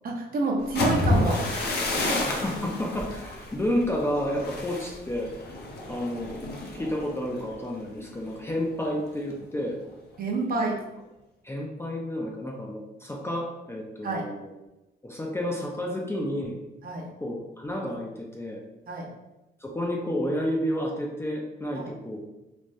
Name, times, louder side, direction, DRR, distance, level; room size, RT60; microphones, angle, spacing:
voice 1, 0.0-2.2 10.2-10.8 14.0-14.3 16.8-17.1 18.9-19.1 21.7-21.9, right 2 dB, 45° right, 0 dB, 0.7 m, -29 dB
sound 1, 0.6-8.4 8.8-9.1 9.5-9.9, left 1 dB, 55° left, 0.7 m, -30 dB
voice 2, 2.3-5.3 5.9-6.4 6.7-9.8 11.4-14.5 15.0-16.6 17.2-18.6 19.6-22.2, equal, 15° left, -1 dB, 0.4 m, -30 dB
3.3 x 2.1 x 2.5 m, 0.98 s
cardioid pair, 90°, 20 cm